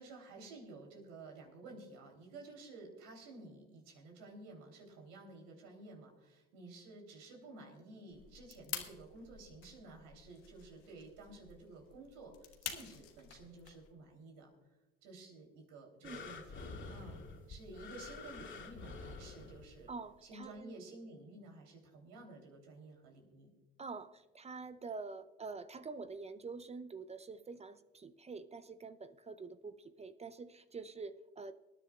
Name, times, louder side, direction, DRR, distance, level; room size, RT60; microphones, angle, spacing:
voice 1, 0.0-14.5 15.0-19.9 20.2-23.5, right 2 dB, 70° right, 3.4 m, -53 dB
sound 1, 8.1-13.9, left 11 dB, 75° left, 1.5 m, -49 dB
sound 2, 16.0-20.0 20.6-20.7, left 4 dB, 40° left, 2.8 m, -48 dB
voice 2, 19.9-20.8 23.8-31.5, right 4 dB, 20° right, 0.6 m, -46 dB
24.5 x 10.0 x 2.4 m
hypercardioid pair, 75°, 31 cm